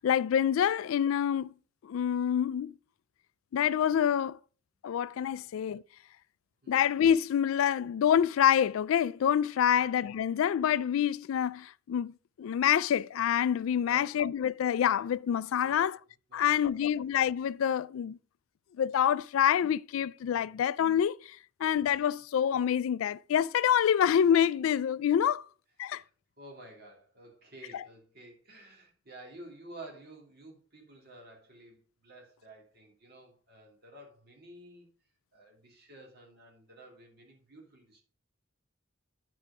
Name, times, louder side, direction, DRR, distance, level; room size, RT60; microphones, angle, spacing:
voice 1, 0.0-1.5 1.8-2.7 3.5-4.4 4.8-5.8 6.7-12.1 12.4-16.0 16.3-18.2 18.8-25.4 25.8-26.0 27.7-27.8, left 9 dB, 80° left, 0.3 m, -27 dB
voice 2, 13.9-14.2 15.6-15.9 16.3-17.1 25.8-26.1 26.4-34.9 35.3-38.0, right 1 dB, 50° right, 2.7 m, -52 dB
10.0 x 4.6 x 4.9 m
head